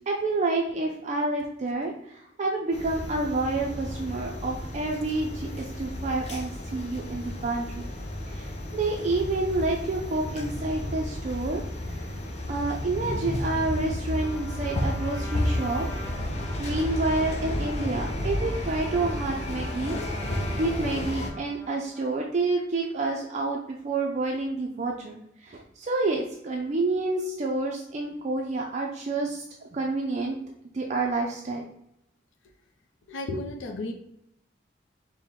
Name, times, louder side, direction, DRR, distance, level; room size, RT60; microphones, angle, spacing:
voice 1, 0.1-7.9 8.3-11.6 11.9-12.0 12.5-15.9 16.6-29.4 29.7-30.4 30.7-31.7, right 2 dB, 40° right, 0 dB, 0.4 m, -29 dB
sound 1, 2.7-21.3, left 1 dB, 35° left, 0.6 m, -32 dB
Trumpet, 14.1-22.2, left 1 dB, 15° left, 1.3 m, -44 dB
voice 2, 33.1-33.9, left 2 dB, 85° left, 4 dB, 0.5 m, -33 dB
4.5 x 2.1 x 3.6 m, 0.80 s
head